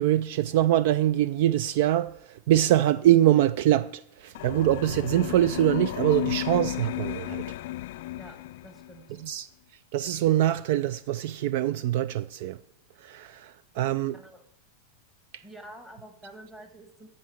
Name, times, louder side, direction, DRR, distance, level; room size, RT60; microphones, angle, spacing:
voice 1, 0.0-7.4 9.2-9.5 9.9-12.6 13.0-14.2, right 13 dB, 50° right, 0.4 m, -24 dB
sound 1, 4.4-9.0, left 16 dB, 55° left, 0.3 m, -33 dB
voice 2, 8.6-9.2 14.1-14.4 15.4-17.1, right 1 dB, 5° right, 1.5 m, -47 dB
14.0 x 5.2 x 7.8 m
supercardioid pair, 170°, 0 cm